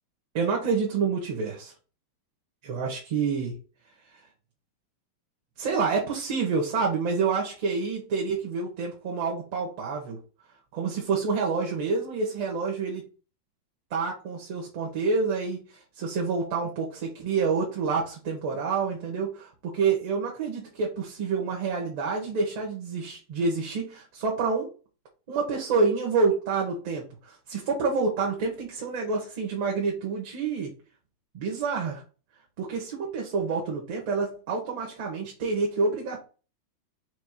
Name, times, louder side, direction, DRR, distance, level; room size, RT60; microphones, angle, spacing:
voice 1, 0.3-1.7 2.6-3.6 5.6-10.2 10.7-13.0 13.9-24.7 25.3-30.7 31.3-32.0 32.6-36.2, right 4 dB, 50° right, -1 dB, 1.2 m, -28 dB
4.4 x 2.4 x 4.6 m, 0.36 s
supercardioid pair, 165°, 0 cm